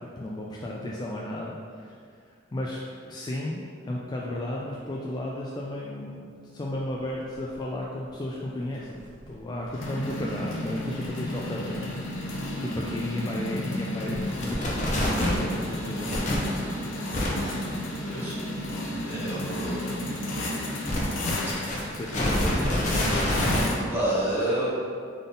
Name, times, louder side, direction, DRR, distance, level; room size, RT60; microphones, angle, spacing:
voice 1, 0.2-2.0 2.3-2.8 3.1-11.9 12.6-16.7 17.1-17.2 18.1-18.4 19.2-19.5 21.9-23.5, left 1 dB, 20° left, -4 dB, 0.3 m, -34 dB
sound 1, 7.5-7.6 8.8-23.8, left 1 dB, 85° left, 0.7 m, -32 dB
sound 2, 14.4-15.4 16.1-16.4 17.1-17.3 20.9-23.6, left 1 dB, 40° left, 0.8 m, -26 dB
voice 2, 17.4-18.3 19.1-19.9 23.9-24.7, right 1 dB, 10° right, -10 dB, 1.3 m, -29 dB
3.8 x 3.7 x 3.8 m, 2.2 s
head